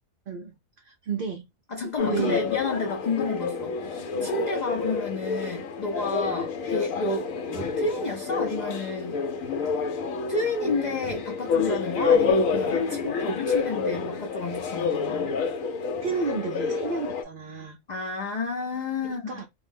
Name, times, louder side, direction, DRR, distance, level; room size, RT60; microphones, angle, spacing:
voice 1, 0.3-0.6 0.8-1.4 2.1-2.4 3.2-3.3 16.0-17.8 19.0-19.5, right 5 dB, 60° right, 0.5 m, -31 dB
voice 2, 1.7-9.2 10.3-15.3 17.9-19.4, left 3 dB, 50° left, 0.5 m, -31 dB
sound 1, 2.0-17.2, left 5 dB, 85° left, 1.0 m, -28 dB
2.6 x 2.0 x 3.4 m
omnidirectional pair, 1.4 m